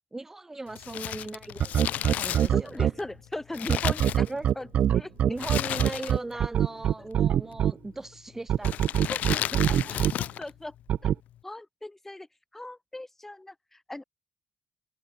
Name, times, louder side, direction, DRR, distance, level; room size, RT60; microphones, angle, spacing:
voice 1, 0.1-2.9 4.3-4.5 5.2-8.8 9.3-10.0, right 2 dB, 15° right, 2.6 m, -38 dB
Crumpling crinkling, 0.7-4.7 5.4-6.4 6.6-6.7 7.6-7.9 8.6-10.5 10.8-10.9, left 12 dB, 85° left, 6.5 m, -33 dB
sound 1, 1.6-2.9 3.7-7.7 8.5-10.1 10.9-11.2, right 10 dB, 70° right, 1.4 m, -23 dB
voice 2, 2.5-4.3 4.6-4.7 4.9-5.1 9.1-9.2 9.6-9.9 10.4-10.7 11.0-11.1 11.4-12.3 12.5-14.0, left 2 dB, 10° left, 5.2 m, -38 dB
cardioid pair, 110°, 2 cm